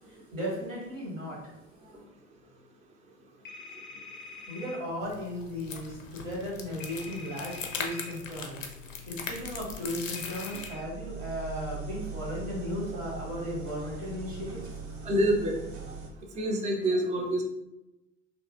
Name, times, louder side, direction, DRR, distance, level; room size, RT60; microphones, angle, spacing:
voice 1, 0.0-1.6 4.5-14.8, equal, 85° right, -4 dB, 1.3 m, -36 dB
sound 1, 3.5-4.8 6.8-8.1 10.2-10.8, left 3 dB, 30° left, 0.6 m, -45 dB
sound 2, 5.0-10.7, left 5 dB, 90° left, 0.5 m, -40 dB
sound 3, 10.5-16.1, right 5 dB, 65° right, 0.8 m, -40 dB
voice 2, 15.0-15.5 16.4-17.4, right 1 dB, 20° right, 1 dB, 0.5 m, -26 dB
3.0 x 2.5 x 2.4 m, 0.94 s
figure-of-eight pair, 65°, 38 cm